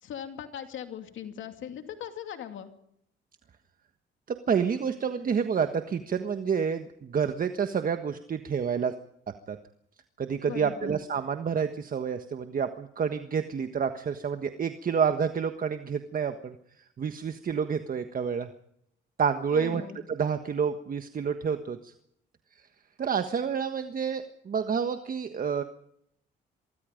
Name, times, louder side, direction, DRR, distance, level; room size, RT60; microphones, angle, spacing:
voice 1, 0.0-2.7 10.4-11.0 19.5-20.0, left 9 dB, 75° left, 7 dB, 2.6 m, -39 dB
voice 2, 4.3-8.9 9.5-9.6 10.2-16.6 17.0-18.5 19.2-19.8 20.1-21.9 23.0-25.6, right 6 dB, 45° right, 8 dB, 1.5 m, -29 dB
24.5 x 24.0 x 5.2 m, 0.74 s
cardioid pair, 90°, 20 cm